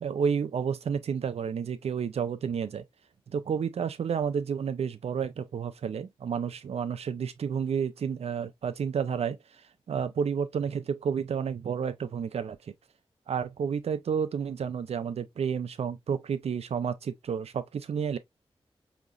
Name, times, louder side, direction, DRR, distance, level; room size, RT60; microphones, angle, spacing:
voice 1, 0.0-2.8 3.3-9.6 9.9-12.7 13.3-18.2, right 7 dB, 85° right, 0.5 m, -31 dB
5.1 x 3.0 x 2.4 m
cardioid pair, 65°, 10 cm